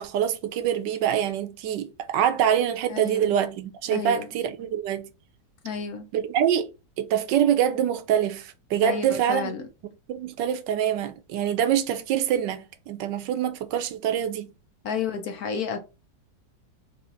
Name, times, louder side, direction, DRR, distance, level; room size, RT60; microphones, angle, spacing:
voice 1, 0.0-5.1 6.1-9.6 10.1-14.5, right 9 dB, 80° right, 1.3 m, -25 dB
voice 2, 2.9-3.3 3.9-4.3 5.6-6.1 8.8-9.6 14.8-15.8, left 6 dB, 60° left, 1.2 m, -31 dB
4.8 x 2.8 x 4.0 m
omnidirectional pair, 2.0 m